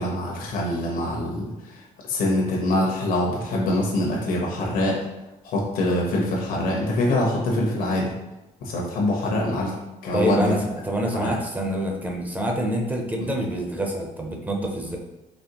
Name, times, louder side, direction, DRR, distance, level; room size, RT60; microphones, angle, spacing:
voice 1, 0.0-1.8 2.1-5.0 5.4-8.1 8.6-9.7 10.0-10.5 11.1-11.3 13.2-13.3, left 1 dB, 75° left, -2 dB, 1.0 m, -24 dB
voice 2, 10.1-15.0, right 1 dB, 10° right, 1 dB, 0.6 m, -26 dB
4.2 x 3.0 x 2.9 m, 1.0 s
cardioid pair, 115°, 15 cm